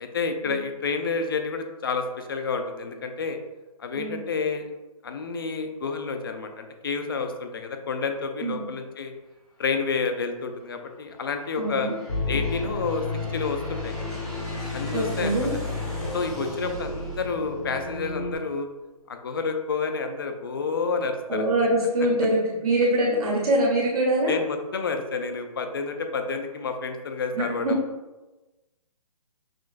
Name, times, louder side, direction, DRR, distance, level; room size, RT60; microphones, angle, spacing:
voice 1, 0.0-3.4 3.8-4.7 5.0-9.1 9.6-11.9 12.3-13.0 13.3-13.9 14.7-15.5 16.1-18.7 19.1-21.4 24.3-27.8, left 4 dB, 35° left, 6 dB, 0.4 m, -29 dB
Aircraft, 9.6-10.2 10.9-18.4, equal, 5° left, 0.9 m, -42 dB
voice 2, 11.6-12.0 14.9-15.5 21.3-24.4 27.3-27.7, right 1 dB, 70° right, -3 dB, 1.5 m, -24 dB
sound 1, 12.1-18.4, left 3 dB, 90° left, 1.1 m, -32 dB
6.0 x 2.2 x 2.5 m, 1.1 s
hypercardioid pair, 170°, 20 cm